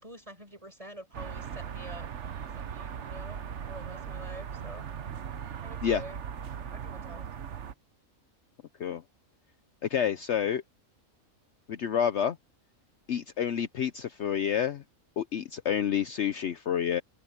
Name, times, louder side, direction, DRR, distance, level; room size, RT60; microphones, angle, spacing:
voice 1, 0.0-2.1 2.6-4.9 5.6-6.2 6.7-7.3, right 1 dB, 25° right, 8.2 m, -46 dB
sound 1, 1.1-7.7, right 8 dB, 60° right, 1.2 m, -39 dB
voice 2, 9.9-10.6 11.7-12.4 13.1-14.8 15.2-17.0, left 8 dB, 60° left, 0.9 m, -28 dB
omnidirectional pair, 1.4 m